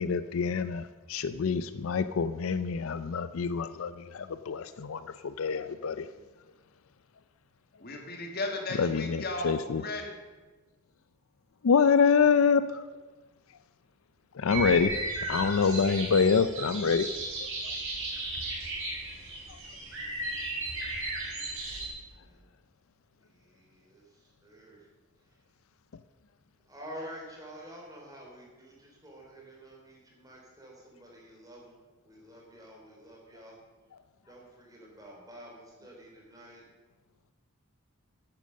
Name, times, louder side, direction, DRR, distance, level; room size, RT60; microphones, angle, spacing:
voice 1, 0.0-6.1 8.8-9.8 11.6-12.8 14.3-14.9 15.3-17.1 17.4-17.8 19.5-19.6, left 5 dB, 70° left, 12 dB, 0.5 m, -26 dB
voice 2, 7.8-10.2, left 2 dB, 45° left, 3 dB, 1.8 m, -35 dB
sound 1, 14.5-21.9, right 2 dB, 65° right, 4.4 m, -35 dB
voice 3, 23.5-24.0 24.4-24.8 26.7-31.8 32.0-33.6 34.3-36.6, equal, 15° right, -2 dB, 3.4 m, -48 dB
10.5 x 9.0 x 6.6 m, 1.2 s
head